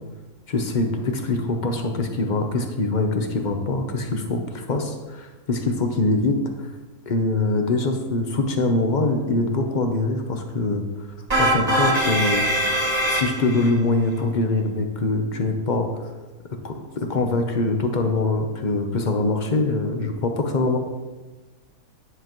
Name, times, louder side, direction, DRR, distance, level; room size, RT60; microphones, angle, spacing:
voice 1, 0.5-6.7 7.1-10.8 11.4-12.4 13.1-15.9 16.6-20.8, left 2 dB, 40° left, 5 dB, 0.8 m, -23 dB
sound 1, 11.3-13.7, right 1 dB, 25° right, 2.1 m, -22 dB
9.7 x 7.8 x 3.1 m, 1.2 s
omnidirectional pair, 1.6 m